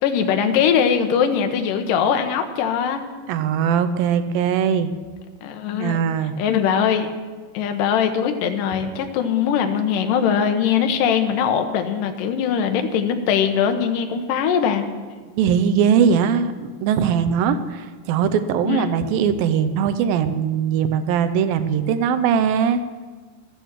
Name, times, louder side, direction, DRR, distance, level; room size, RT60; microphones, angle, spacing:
voice 1, 0.0-3.0 5.4-6.0 6.4-7.1 7.5-14.9 18.7-18.8, left 7 dB, 75° left, 6 dB, 2.5 m, -21 dB
voice 2, 3.3-4.9 5.8-6.3 15.3-16.6 16.8-22.8, right 7 dB, 85° right, 10 dB, 2.5 m, -20 dB
13.5 x 9.2 x 7.4 m, 1.4 s
omnidirectional pair, 4.1 m